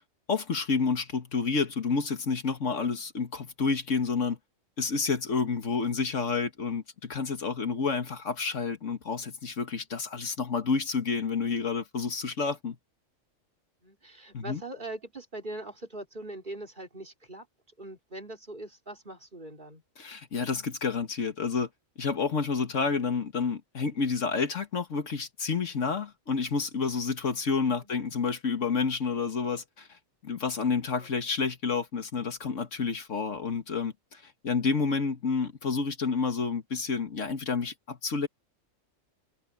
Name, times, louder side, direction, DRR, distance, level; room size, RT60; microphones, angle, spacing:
voice 1, 0.3-4.4 4.8-12.8 14.3-14.6 20.0-21.7 22.0-30.0 30.2-38.3, left 5 dB, 70° left, 1.9 m, -29 dB
voice 2, 13.8-17.5 17.8-19.8 27.8-28.1 31.0-31.1, right 2 dB, 40° right, 3.4 m, -42 dB
omnidirectional pair, 1.3 m